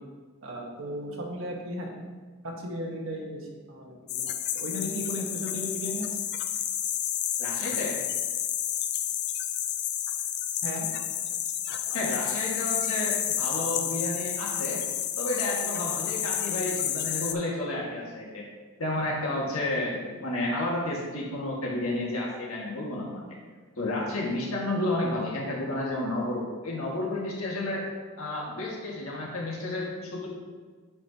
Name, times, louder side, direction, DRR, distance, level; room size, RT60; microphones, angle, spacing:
voice 1, 0.4-1.9 2.4-6.1 10.6-10.9, equal, 70° right, 0 dB, 1.3 m, -35 dB
sound 1, 4.1-17.3, left 10 dB, 50° left, 0.4 m, -30 dB
voice 2, 7.4-8.0 11.9-14.8 15.2-18.5 18.8-23.2 23.8-27.9 28.2-30.3, left 1 dB, 80° left, -3 dB, 1.8 m, -31 dB
9.6 x 5.0 x 2.8 m, 1.4 s
head